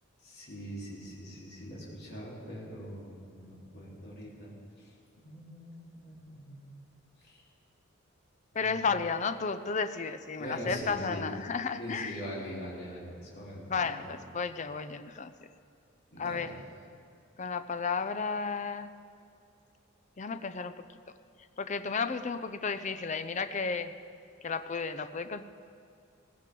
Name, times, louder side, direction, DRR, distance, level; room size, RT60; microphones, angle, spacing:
voice 1, 0.2-4.9 5.2-6.7 7.2-7.4 8.5-8.7 10.4-11.3 11.7-14.1 16.1-16.5, equal, 50° left, -6 dB, 3.7 m, -42 dB
voice 2, 8.5-12.2 13.7-15.3 16.2-16.5 17.4-18.9 20.2-20.8 21.6-23.9 24.4-25.4, left 5 dB, 35° left, 10 dB, 0.5 m, -33 dB
18.0 x 15.5 x 3.8 m, 2.4 s
head